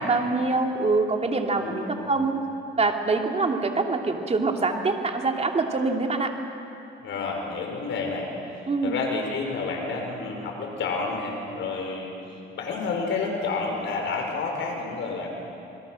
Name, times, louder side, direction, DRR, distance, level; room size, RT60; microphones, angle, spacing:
voice 1, 0.0-2.4 2.8-6.3 8.7-9.0, right 3 dB, 35° right, 2 dB, 2.7 m, -25 dB
voice 2, 1.6-2.1 7.0-8.3 8.8-12.1 12.6-15.3, left 4 dB, 75° left, 1 dB, 5.3 m, -30 dB
28.0 x 21.5 x 6.5 m, 2.9 s
cardioid pair, 90°, 20 cm